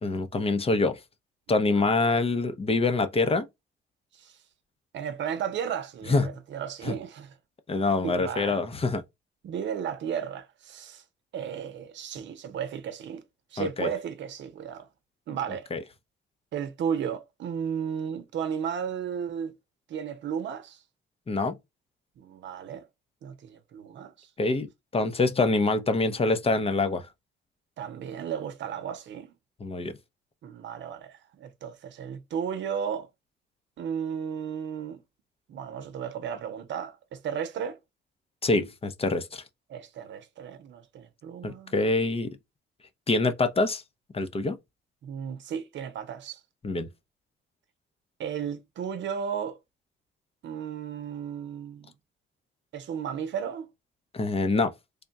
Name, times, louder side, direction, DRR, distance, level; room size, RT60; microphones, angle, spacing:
voice 1, 0.0-1.0 1.5-3.5 6.1-6.3 6.9-7.0 7.7-9.0 13.6-13.9 15.7-15.8 21.3-21.6 24.4-24.7 24.9-27.1 29.6-30.0 38.4-39.4 41.4-42.4 43.1-43.8 44.1-44.6 46.6-46.9 54.1-54.7, left 3 dB, 30° left, 0.6 m, -25 dB
voice 2, 1.5-1.9 4.1-4.4 4.9-7.4 8.0-8.6 9.4-11.0 11.3-13.2 13.5-14.9 15.3-15.7 16.5-19.5 19.9-20.8 22.2-22.9 23.2-24.3 27.8-29.3 30.4-33.1 33.8-35.0 35.5-37.8 39.7-41.7 45.0-46.4 48.2-49.6 50.4-51.9 52.7-53.7, right 8 dB, 65° right, 0.7 m, -34 dB
3.5 x 2.2 x 3.8 m
cardioid pair, 90°, 20 cm